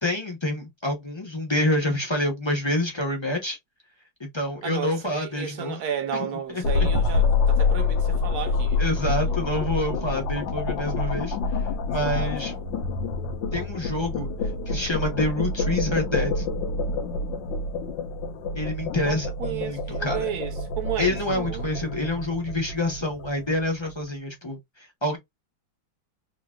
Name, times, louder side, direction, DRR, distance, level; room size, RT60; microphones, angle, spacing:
voice 1, 0.0-3.6 4.2-5.8 6.1-6.9 8.8-11.4 11.9-12.5 13.5-14.3 14.7-16.4 18.5-20.3 21.0-25.2, left 1 dB, 30° left, 0.5 m, -27 dB
voice 2, 4.6-8.8 9.1-9.5 11.9-12.8 19.0-21.7, right 8 dB, 60° right, 1.2 m, -33 dB
sound 1, 6.6-23.9, left 3 dB, 75° left, 1.4 m, -27 dB
3.8 x 2.6 x 2.3 m
omnidirectional pair, 2.1 m